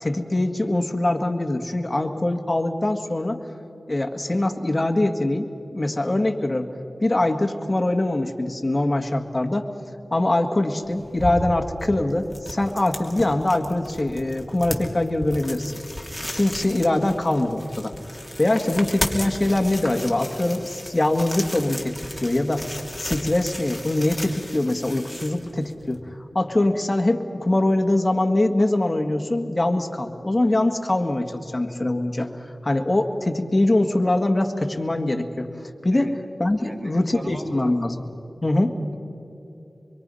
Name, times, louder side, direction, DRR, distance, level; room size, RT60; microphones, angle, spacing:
voice 1, 0.0-3.4 3.9-6.7 7.0-9.7 10.1-15.7 16.3-17.9 18.4-21.9 22.2-22.7 23.0-26.0 26.3-35.5 35.8-36.1 36.4-38.0 38.4-38.7, left 1 dB, 35° left, 4 dB, 1.9 m, -23 dB
sound 1, 10.8-26.0, left 1 dB, 10° left, 2.9 m, -35 dB
voice 2, 36.6-37.9, right 1 dB, 55° right, 2 dB, 3.0 m, -37 dB
25.5 x 22.5 x 5.6 m, 3.0 s
wide cardioid pair, 50°, 0 cm